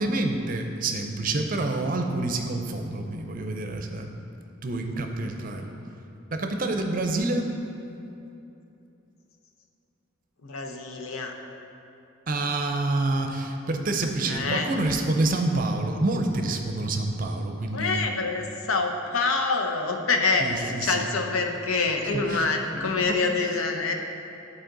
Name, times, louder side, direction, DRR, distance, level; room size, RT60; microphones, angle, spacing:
voice 1, 0.0-4.2 4.6-5.7 6.3-7.5 12.3-18.1 20.4-21.0 22.1-22.5 22.7-23.2, right 2 dB, 40° right, 4 dB, 0.5 m, -27 dB
voice 2, 10.4-11.3 14.2-14.7 17.7-23.9, left 4 dB, 85° left, 3 dB, 0.7 m, -26 dB
11.5 x 4.2 x 3.9 m, 2.8 s
head